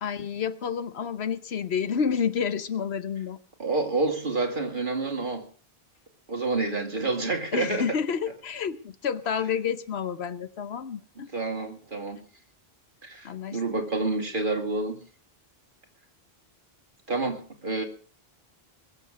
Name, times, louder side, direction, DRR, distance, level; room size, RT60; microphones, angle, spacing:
voice 1, 0.0-3.4 7.5-11.3 13.2-13.6, left 7 dB, 90° left, 1.2 m, -29 dB
voice 2, 3.6-5.4 6.3-7.8 11.3-12.2 13.0-15.0 17.1-17.8, right 3 dB, 55° right, 2.7 m, -28 dB
22.0 x 7.3 x 6.4 m
omnidirectional pair, 1.0 m